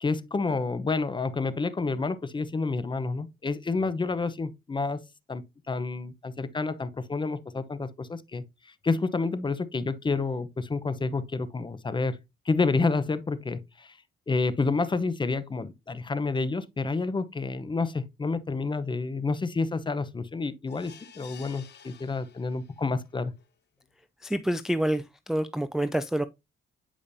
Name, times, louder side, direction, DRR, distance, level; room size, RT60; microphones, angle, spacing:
voice 1, 0.0-5.0 5.3-8.4 8.8-12.2 12.5-14.0 14.3-23.3, left 3 dB, 25° left, 0.8 m, -29 dB
sound 1, 20.7-22.9 23.4-23.5 23.8-23.9, left 8 dB, 60° left, 1.2 m, -51 dB
voice 2, 24.2-26.2, right 1 dB, ahead, 0.4 m, -27 dB
8.6 x 5.0 x 2.6 m
cardioid pair, 90°, 20 cm